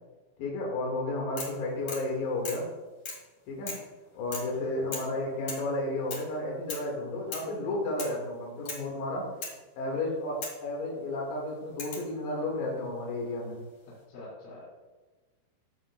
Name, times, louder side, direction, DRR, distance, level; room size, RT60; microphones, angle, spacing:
voice 1, 0.4-2.7 3.5-3.8 4.1-9.3 9.8-13.6, left 2 dB, 85° left, -2 dB, 3.9 m, -32 dB
sound 1, 1.4-1.6 1.9-2.1 2.4-2.7 3.1-3.3 3.7-3.9 4.3-4.6 4.9-5.1 5.5-5.7 6.1-6.3 6.7-6.9 7.3-7.5 8.0-8.2 8.7-8.9 9.4-9.6 10.4-10.6 11.8-12.1 13.3-13.8, left 4 dB, 45° left, 2.6 m, -39 dB
voice 2, 13.9-14.7, left 2 dB, 60° left, -7 dB, 4.3 m, -46 dB
15.5 x 7.4 x 2.3 m, 1.2 s
omnidirectional pair, 4.8 m